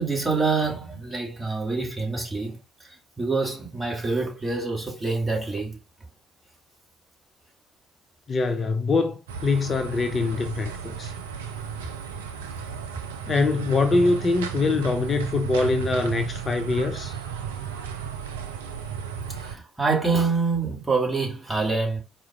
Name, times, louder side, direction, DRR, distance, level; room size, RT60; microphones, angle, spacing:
voice 1, 0.0-2.6 3.2-5.8 19.4-22.0, right 4 dB, 15° right, 1.7 m, -26 dB
voice 2, 8.3-11.1 13.3-17.2, left 3 dB, 35° left, 0.5 m, -24 dB
sound 1, 9.3-19.6, right 7 dB, 75° right, 0.3 m, -34 dB
4.4 x 2.2 x 3.4 m
figure-of-eight pair, 50°, 0 cm